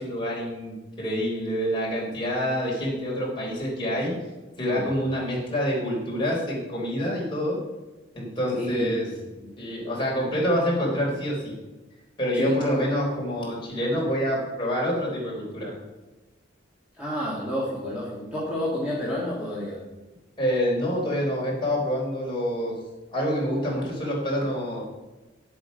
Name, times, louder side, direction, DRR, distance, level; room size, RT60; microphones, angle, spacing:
voice 1, 0.0-4.1 4.6-7.6 8.1-9.1 9.6-11.5 12.2-15.7 20.4-22.8 23.1-24.8, equal, 25° left, -4 dB, 3.8 m, -27 dB
voice 2, 8.5-9.5 12.4-12.9 16.9-19.8, left 1 dB, 5° right, -7 dB, 2.0 m, -30 dB
9.8 x 8.0 x 5.2 m, 1.1 s
head